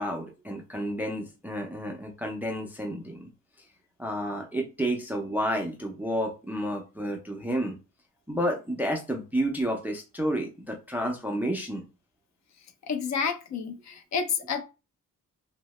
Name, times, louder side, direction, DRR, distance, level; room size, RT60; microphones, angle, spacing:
voice 1, 0.0-3.2 4.0-7.8 8.3-11.8, equal, 5° right, 1 dB, 0.3 m, -30 dB
voice 2, 12.9-14.6, left 6 dB, 55° left, 7 dB, 0.5 m, -29 dB
2.7 x 2.1 x 3.0 m, 0.29 s
wide cardioid pair, 165°, 34 cm